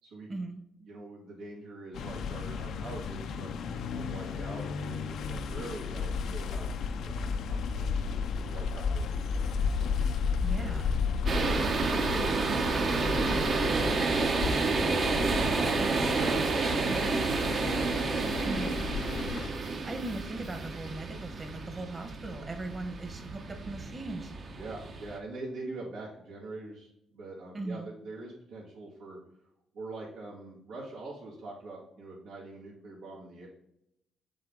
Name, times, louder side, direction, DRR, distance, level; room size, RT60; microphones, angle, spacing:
voice 1, 0.8-9.3 10.5-10.7 24.5-29.2 29.7-33.5, right 2 dB, 90° right, -5 dB, 2.1 m, -44 dB
sound 1, 1.9-19.5, left 5 dB, 75° left, 0.5 m, -33 dB
voice 2, 10.4-10.9 18.4-18.8 19.8-24.3 27.5-27.9, right 2 dB, 30° right, 5 dB, 1.3 m, -38 dB
sound 2, 11.3-25.2, right 3 dB, 55° right, 1.0 m, -30 dB
7.6 x 3.8 x 3.7 m, 0.79 s
cardioid pair, 90°, 0 cm